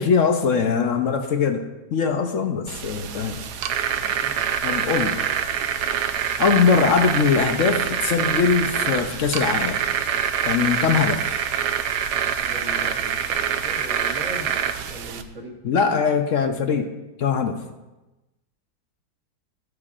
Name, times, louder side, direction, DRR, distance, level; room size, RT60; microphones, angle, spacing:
voice 1, 0.0-1.6 1.9-3.4 4.6-5.2 6.4-9.8 10.4-11.4 15.6-16.9 17.2-17.6, left 6 dB, 60° left, 6 dB, 1.0 m, -21 dB
sound 1, 2.7-15.2, right 8 dB, 80° right, 1.2 m, -25 dB
voice 2, 4.0-4.5 12.4-14.5 14.9-15.5, right 1 dB, 50° right, 1 dB, 1.7 m, -39 dB
13.0 x 9.6 x 2.5 m, 1.0 s
omnidirectional pair, 1.7 m